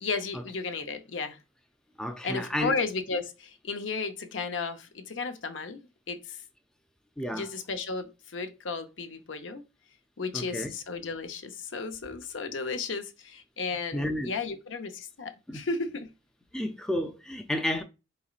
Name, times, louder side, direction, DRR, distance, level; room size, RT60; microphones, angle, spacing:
voice 1, 0.0-1.4 2.2-5.8 6.1-6.4 7.3-9.6 10.2-16.1, left 4 dB, 80° left, 0.7 m, -34 dB
voice 2, 2.0-2.7 7.2-7.5 10.3-10.7 13.9-14.3 15.5-15.6 16.5-17.8, left 1 dB, 5° left, 0.4 m, -31 dB
4.1 x 3.9 x 2.4 m
head